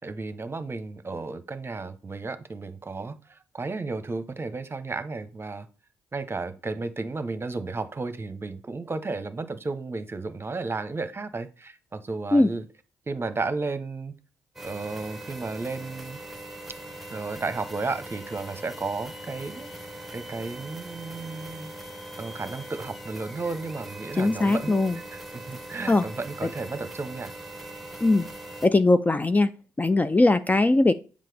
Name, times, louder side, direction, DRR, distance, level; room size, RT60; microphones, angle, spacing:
voice 1, 0.0-5.7 6.1-12.6 13.1-14.1 14.6-16.2 17.1-21.7 22.2-24.8 25.3-27.3, right 3 dB, 30° right, 11 dB, 0.9 m, -33 dB
sound 1, 14.6-28.7, right 1 dB, ahead, 1.2 m, -41 dB
voice 2, 24.2-25.0 25.9-26.1 26.4-26.5 28.0-28.3 28.6-29.5 29.8-30.9, left 2 dB, 20° left, 12 dB, 0.4 m, -20 dB
7.5 x 5.2 x 3.4 m, 0.37 s
hypercardioid pair, 50°, 8 cm